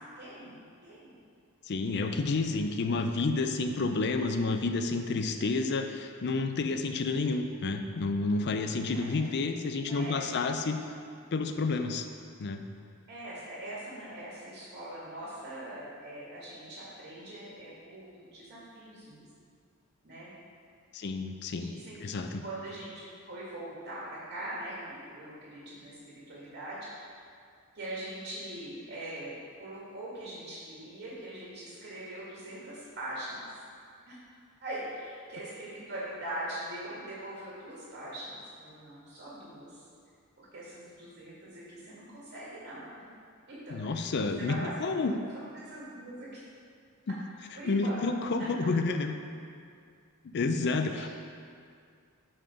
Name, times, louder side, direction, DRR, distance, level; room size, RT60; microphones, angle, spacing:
voice 1, 0.2-1.2 1.9-2.2 8.9-9.4 9.8-10.2 10.5-10.6 13.1-19.3 20.0-20.3 21.6-22.9 23.3-26.0 26.3-27.1 27.7-33.4 34.1-34.2 34.6-39.8 40.4-42.8 43.5-44.0 44.4-44.7 45.5-46.4 47.6-48.0 48.4-48.5 50.9-51.1, right 1 dB, 50° right, -8 dB, 1.8 m, -42 dB
voice 2, 1.6-10.8 11.3-12.1 12.4-12.6 20.9-21.7 22.0-22.4 43.7-45.1 47.1-47.2 47.7-49.2 50.2-51.1, left 3 dB, 50° left, 6 dB, 0.4 m, -30 dB
5.7 x 5.5 x 4.9 m, 2.3 s
head